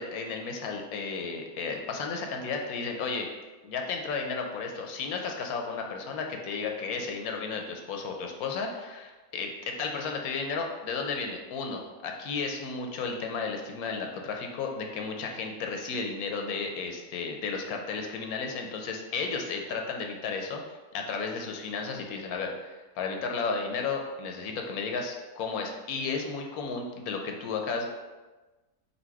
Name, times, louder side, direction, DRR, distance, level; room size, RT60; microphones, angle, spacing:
voice 1, 0.0-3.3 3.6-20.6 20.9-27.9, left 4 dB, 80° left, 2 dB, 1.0 m, -33 dB
4.0 x 2.5 x 4.5 m, 1.2 s
omnidirectional pair, 1.6 m